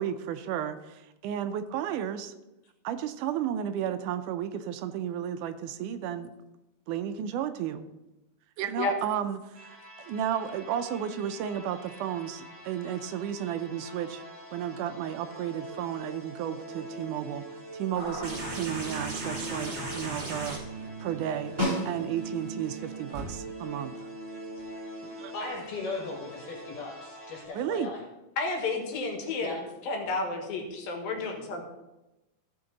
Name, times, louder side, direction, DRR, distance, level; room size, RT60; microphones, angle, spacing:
voice 1, 0.0-2.3 2.8-6.3 6.9-7.9 8.6-14.2 14.5-17.4 17.7-20.6 21.0-21.5 21.9-24.1 25.2-25.3 27.5-27.9, right 9 dB, 80° right, 9 dB, 1.9 m, -33 dB
sound 1, 9.5-27.5, right 2 dB, 65° right, 0.6 m, -43 dB
sound 2, 17.9-23.2 24.6-24.7, right 1 dB, 35° right, 3.3 m, -38 dB
Snare drum, 21.6-22.5 26.9-27.0, equal, 10° right, 2.9 m, -30 dB
voice 2, 25.3-28.0 29.4-29.5, left 3 dB, 70° left, -2 dB, 3.2 m, -37 dB
voice 3, 28.4-31.6, left 3 dB, 85° left, 2 dB, 3.3 m, -31 dB
15.0 x 6.0 x 3.9 m, 0.98 s
omnidirectional pair, 4.0 m